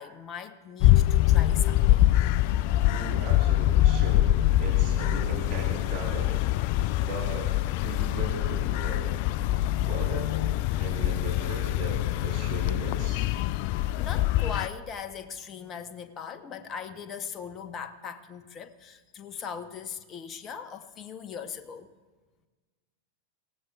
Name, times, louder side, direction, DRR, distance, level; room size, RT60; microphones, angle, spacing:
voice 1, 0.0-2.1 14.0-21.9, left 7 dB, 30° left, 9 dB, 0.9 m, -39 dB
sound 1, 0.8-14.7, left 14 dB, 45° left, 0.3 m, -24 dB
voice 2, 2.8-4.3 4.6-6.4 7.0-9.1 9.8-13.3, right 4 dB, 35° right, -1 dB, 3.4 m, -38 dB
24.5 x 17.0 x 2.4 m, 1.3 s
figure-of-eight pair, 90°, 0 cm